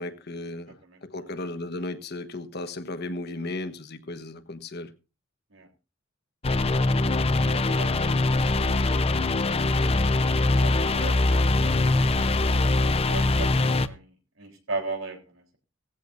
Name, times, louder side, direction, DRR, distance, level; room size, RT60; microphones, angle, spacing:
voice 1, 0.0-0.7 1.0-4.9, left 2 dB, 55° left, 1.3 m, -35 dB
voice 2, 0.8-1.5 5.5-5.7 7.3-9.3 10.6-11.7 12.8-15.6, right 3 dB, 85° right, 3.6 m, -38 dB
sound 1, 6.4-13.9, left 2 dB, 30° left, 0.6 m, -22 dB
17.5 x 15.5 x 2.6 m
head